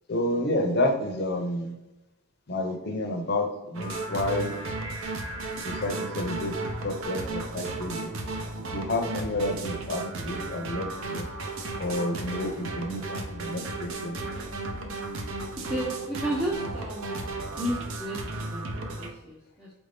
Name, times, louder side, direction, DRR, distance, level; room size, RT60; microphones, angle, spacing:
voice 1, 0.1-1.8 2.5-4.5 5.7-6.5 6.8-8.1 8.7-11.3 11.8-14.1, left 1 dB, 45° left, 4 dB, 0.6 m, -30 dB
sound 1, 3.7-19.1, right 2 dB, 60° right, 0.6 m, -34 dB
voice 2, 15.7-17.3 17.5-19.7, equal, 5° right, -6 dB, 0.5 m, -33 dB
4.5 x 2.6 x 3.3 m, 1.0 s
head